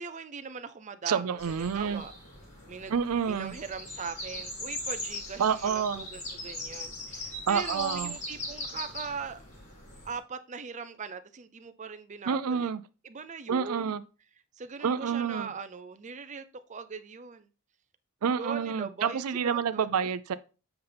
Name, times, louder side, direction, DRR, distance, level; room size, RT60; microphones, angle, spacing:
voice 1, 0.0-2.1 2.7-2.9 3.2-9.4 10.0-12.7 13.0-14.0 14.6-17.5 18.4-19.9, right 5 dB, 35° right, 0.5 m, -40 dB
voice 2, 1.1-2.0 2.9-3.5 5.4-6.0 7.5-8.2 12.3-12.8 13.5-14.0 14.8-15.5 18.2-20.3, right 7 dB, 85° right, 0.4 m, -28 dB
sound 1, 1.4-10.2, left 1 dB, 30° left, 4.0 m, -40 dB
7.9 x 5.5 x 3.4 m
head